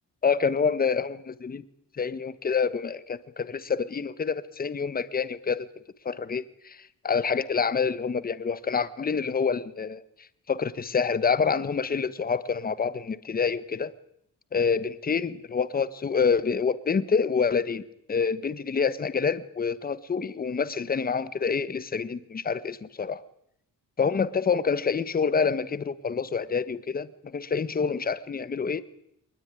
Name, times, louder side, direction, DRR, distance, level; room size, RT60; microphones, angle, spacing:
voice 1, 0.2-1.6 2.0-5.7 6.0-10.0 10.5-13.9 14.5-17.8 18.1-23.2 24.0-28.8, left 5 dB, 25° left, 15 dB, 1.2 m, -27 dB
24.0 x 20.5 x 9.7 m, 0.75 s
cardioid pair, 165°, 34 cm